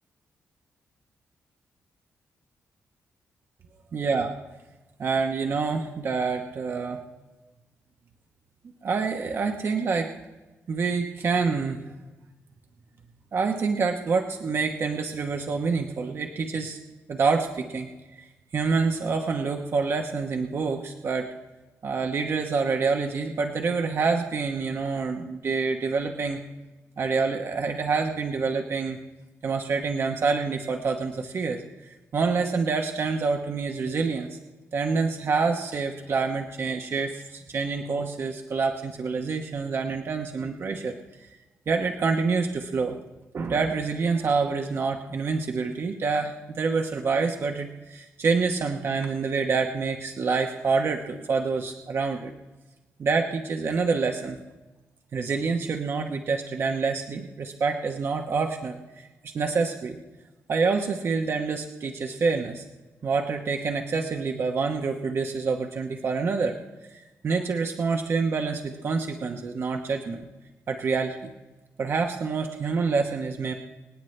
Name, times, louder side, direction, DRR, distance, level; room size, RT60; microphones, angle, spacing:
voice 1, 3.9-4.3 5.0-7.0 8.8-10.1 10.7-11.8 13.3-16.8 17.1-17.9 18.2-18.3 18.5-21.3 21.8-26.4 27.0-29.0 29.4-34.4 34.7-41.3 41.7-43.0 43.3-52.3 53.0-54.4 55.1-60.0 60.5-62.6 63.0-66.6 66.9-70.3 70.7-71.3 71.8-73.5, right 4 dB, 50° right, 3 dB, 1.1 m, -27 dB
27.0 x 9.1 x 3.3 m, 1.2 s
cardioid pair, 110°, 5 cm